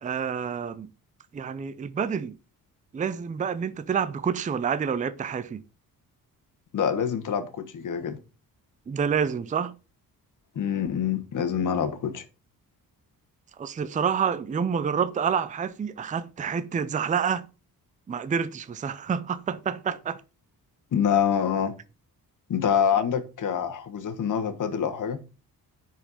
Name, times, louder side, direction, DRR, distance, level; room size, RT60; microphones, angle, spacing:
voice 1, 0.0-0.9 1.3-2.4 2.9-5.6 8.9-9.8 13.6-17.5 18.1-20.2, right 7 dB, 20° right, 0.5 m, -28 dB
voice 2, 6.7-8.2 10.5-12.2 20.9-21.7 22.5-25.2, left 8 dB, 55° left, 1.4 m, -26 dB
10.5 x 4.6 x 5.7 m
wide cardioid pair, 180°, 37 cm